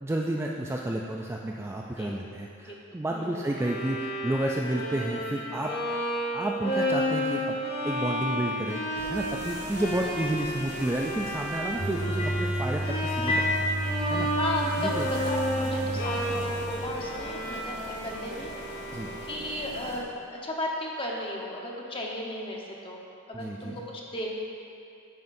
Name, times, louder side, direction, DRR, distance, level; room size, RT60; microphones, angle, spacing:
voice 1, 0.0-5.7 6.3-7.6 7.8-8.8 9.1-13.7 14.1-14.3 14.8-15.1 15.9-16.0 18.9-19.1 23.3-23.8, right 1 dB, 10° right, -1 dB, 0.3 m, -31 dB
voice 2, 3.1-3.5 14.4-18.5 19.2-20.1 20.4-23.0 23.3-24.3, left 1 dB, 25° left, -2 dB, 1.0 m, -34 dB
Bowed string instrument, 3.5-19.6, equal, 50° left, 1.5 m, -32 dB
sound 1, 8.9-20.0, right 1 dB, 35° right, 1.3 m, -42 dB
sound 2, 11.8-16.8, right 1 dB, 80° left, 2.0 m, -31 dB
9.4 x 9.4 x 2.6 m, 2.6 s
head